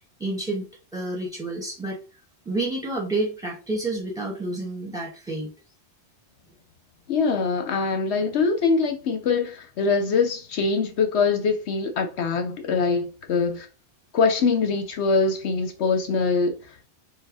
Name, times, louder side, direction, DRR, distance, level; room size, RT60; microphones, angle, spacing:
voice 1, 0.2-0.6 0.9-2.0 2.5-5.5 13.4-13.5, right 2 dB, 5° right, 1.9 m, -29 dB
voice 2, 7.1-13.7 14.1-16.9, left 4 dB, 75° left, 1.0 m, -23 dB
4.8 x 2.2 x 4.7 m
omnidirectional pair, 1.2 m